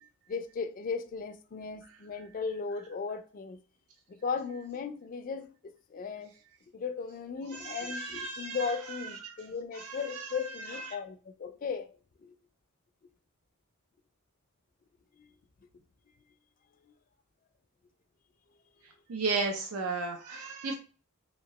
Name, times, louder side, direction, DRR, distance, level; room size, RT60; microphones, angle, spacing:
voice 1, 0.3-3.6 4.1-6.3 6.7-11.9 12.2-12.3 15.2-15.3, left 5 dB, 40° left, 0.3 m, -36 dB
voice 2, 7.5-8.7 9.2-9.3 9.8-10.3 10.7-10.8 19.1-20.8, right 4 dB, 90° right, 0.5 m, -34 dB
2.9 x 2.7 x 2.9 m
head